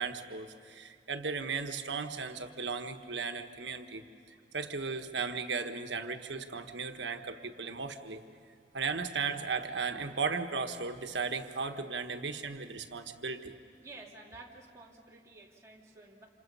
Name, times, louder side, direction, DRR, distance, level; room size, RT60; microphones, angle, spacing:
voice 1, 0.0-4.0 4.3-8.2 8.7-13.5, right 5 dB, 90° right, 7 dB, 1.3 m, -36 dB
voice 2, 13.8-16.3, right 2 dB, 15° right, -4 dB, 3.2 m, -51 dB
28.5 x 27.5 x 5.6 m, 2.5 s
head